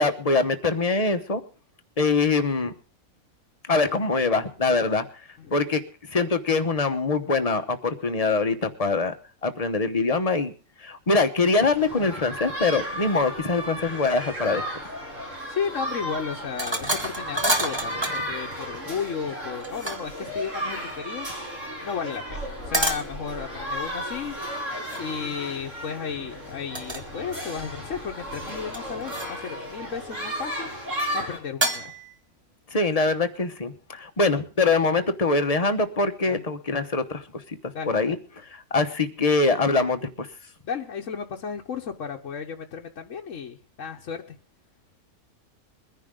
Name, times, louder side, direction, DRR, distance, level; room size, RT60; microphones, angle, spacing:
voice 1, 0.0-1.4 2.0-2.7 3.7-5.8 6.1-9.1 9.4-10.5 10.8-14.6 32.7-37.6 37.9-38.2 38.5-40.3, left 3 dB, 30° left, 8 dB, 1.0 m, -23 dB
sound 1, 11.7-31.4, equal, 55° right, 4.9 m, -34 dB
voice 2, 15.5-21.3 21.8-24.4 25.0-30.7 31.1-31.9 36.3-36.4 37.7-38.1 40.7-44.4, left 6 dB, 60° left, 1 dB, 1.3 m, -34 dB
sound 2, 16.6-18.2 19.5-20.2 22.7-23.1 24.9-25.1 26.7-27.1 27.4-28.0 28.7-29.5 31.6-32.1, right 1 dB, 20° right, 1.5 m, -28 dB
22.0 x 10.5 x 3.7 m, 0.37 s
omnidirectional pair, 1.5 m